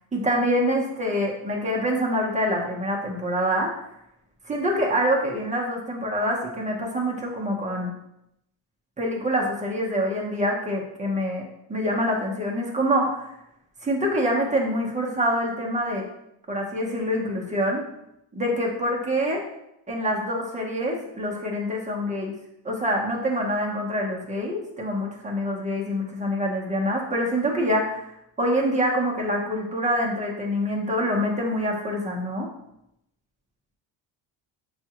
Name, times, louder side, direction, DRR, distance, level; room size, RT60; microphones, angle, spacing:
voice 1, 0.1-3.7 4.4-7.9 9.0-11.4 11.7-13.3 13.8-16.1 16.5-17.8 18.3-19.4 19.9-22.3 22.6-28.1 28.4-32.5, equal, 15° right, -2 dB, 0.8 m, -25 dB
6.7 x 2.4 x 2.9 m, 0.82 s
cardioid pair, 130°, 49 cm